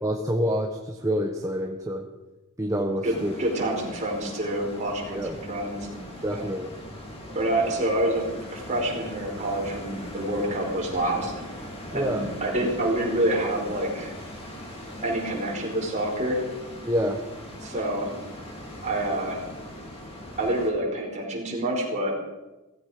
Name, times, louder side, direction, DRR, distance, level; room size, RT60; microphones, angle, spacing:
voice 1, 0.0-2.0 2.6-3.3 5.1-5.4 6.2-6.7 11.9-12.3 16.8-17.2, equal, 15° right, 1 dB, 1.2 m, -27 dB
voice 2, 3.0-5.2 5.5-6.0 6.3-6.5 7.3-8.2 8.5-11.3 11.9-14.1 15.0-16.4 17.6-18.1 18.8-19.4 20.4-22.2, right 1 dB, 35° right, -2 dB, 5.0 m, -27 dB
sound 1, 3.1-20.7, left 1 dB, 25° left, 3.0 m, -40 dB
17.5 x 15.0 x 5.1 m, 1.1 s
head